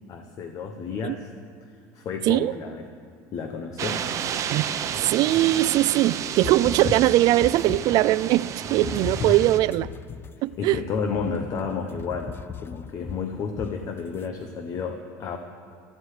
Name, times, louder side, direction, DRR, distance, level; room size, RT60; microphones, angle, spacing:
voice 1, 0.1-1.3 1.6-2.9 3.3-4.1 9.3-9.4 10.6-15.4, left 5 dB, 45° left, 6 dB, 1.0 m, -31 dB
sound 1, 3.8-9.6, right 8 dB, 45° right, 0.8 m, -31 dB
voice 2, 5.1-9.9 10.4-10.8, right 16 dB, 60° right, 17 dB, 0.3 m, -21 dB
sound 2, 6.3-8.1 8.8-14.3, left 7 dB, 30° left, 0.3 m, -37 dB
17.0 x 13.5 x 3.3 m, 2.4 s
supercardioid pair, 105°, 8 cm